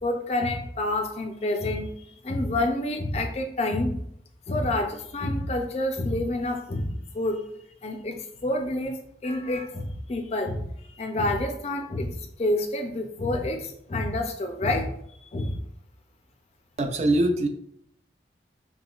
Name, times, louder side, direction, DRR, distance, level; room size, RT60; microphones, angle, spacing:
voice 1, 0.0-4.0 4.5-7.4 7.8-14.9 15.3-15.6, left 1 dB, 35° left, 5 dB, 0.4 m, -28 dB
voice 2, 16.8-17.5, right 1 dB, 40° right, 5 dB, 0.3 m, -22 dB
5.6 x 2.2 x 2.3 m, 0.73 s
head